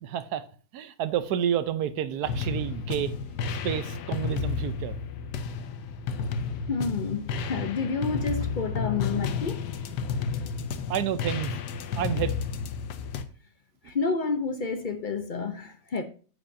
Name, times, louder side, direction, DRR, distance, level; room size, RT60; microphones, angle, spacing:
voice 1, 0.0-0.4 0.7-3.1 3.6-4.9 10.9-11.6 12.0-12.3, right 10 dB, 70° right, 1.2 m, -29 dB
sound 1, 2.2-13.2, left 5 dB, 75° left, 1.3 m, -31 dB
voice 2, 6.7-9.6 10.3-10.5 13.8-16.0, left 4 dB, 60° left, 0.5 m, -30 dB
9.4 x 8.0 x 2.7 m
omnidirectional pair, 1.9 m